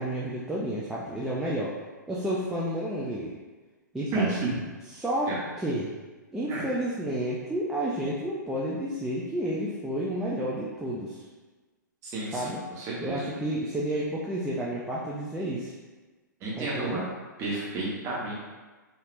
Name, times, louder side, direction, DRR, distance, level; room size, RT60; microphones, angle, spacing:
voice 1, 0.0-1.7 2.1-3.3 3.9-4.3 4.9-5.9 6.3-11.2 12.3-12.6 13.0-15.7 16.6-17.0, right 1 dB, 5° right, -7 dB, 0.3 m, -31 dB
voice 2, 4.1-4.6 5.3-5.4 6.5-6.7 12.0-13.3 16.4-17.1 17.4-18.3, right 2 dB, 25° right, -6 dB, 1.1 m, -31 dB
3.3 x 2.7 x 2.5 m, 1.3 s
hypercardioid pair, 125°, 10 cm